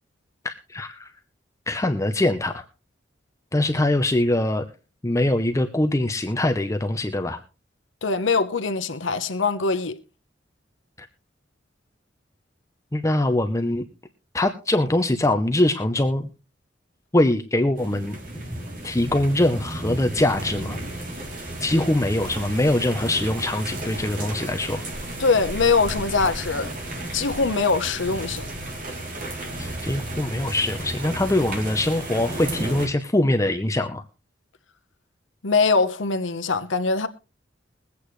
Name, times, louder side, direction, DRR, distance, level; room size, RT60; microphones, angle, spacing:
voice 1, 0.4-1.1 1.7-2.6 3.5-4.6 5.0-7.4 12.9-13.8 14.3-16.3 17.1-18.2 18.8-20.8 21.6-24.8 29.6-34.0, left 1 dB, 15° left, 0.7 m, -23 dB
voice 2, 8.0-10.0 25.2-26.7 27.1-28.5 35.4-37.1, left 4 dB, 85° left, 0.9 m, -22 dB
sound 1, 17.7-32.9, right 1 dB, 45° right, 3.2 m, -33 dB
22.0 x 8.4 x 3.2 m
head